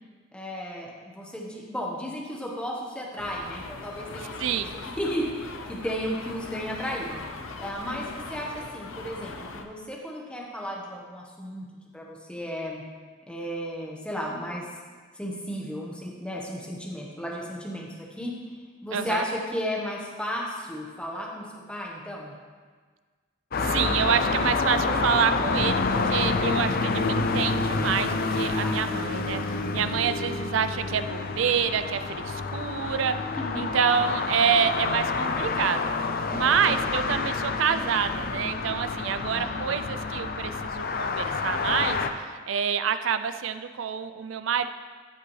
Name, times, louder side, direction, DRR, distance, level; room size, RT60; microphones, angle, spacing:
voice 1, 0.3-7.2 7.6-11.7 11.9-12.8 13.3-14.6 15.1-18.3 18.8-22.3 28.6-28.9 29.6-29.9 33.4-33.7 36.3-36.5 39.1-39.5, equal, 5° left, -3 dB, 1.2 m, -34 dB
sound 1, 3.2-9.6, left 3 dB, 90° left, 0.7 m, -40 dB
voice 2, 4.4-4.7 18.9-19.3 23.6-33.2 33.6-35.8 36.3-42.0 42.5-44.7, right 7 dB, 75° right, 11 dB, 0.4 m, -27 dB
sound 2, 23.5-42.1, left 4 dB, 50° left, 0.5 m, -28 dB
14.0 x 6.0 x 3.3 m, 1.5 s
head